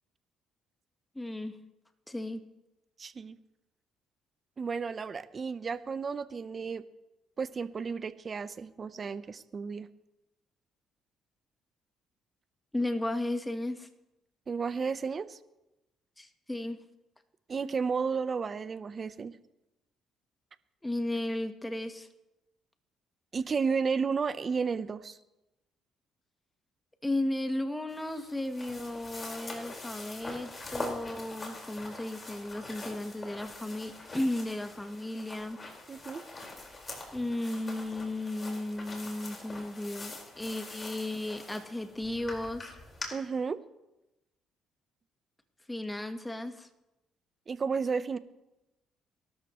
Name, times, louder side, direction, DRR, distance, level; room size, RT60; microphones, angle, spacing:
voice 1, 1.1-1.5 2.1-2.4 12.7-13.9 16.2-16.8 20.8-22.1 27.0-35.6 37.1-42.7 45.7-46.7, left 1 dB, 10° left, 7 dB, 1.3 m, -34 dB
voice 2, 3.0-3.4 4.6-6.8 7.4-9.9 14.5-15.4 17.5-19.4 23.3-25.2 35.9-36.2 43.1-43.6 47.5-48.2, right 5 dB, 40° right, 14 dB, 0.8 m, -32 dB
sound 1, 27.9-43.1, left 2 dB, 30° left, 4.8 m, -44 dB
23.0 x 12.5 x 3.1 m, 0.97 s
supercardioid pair, 80°, 0 cm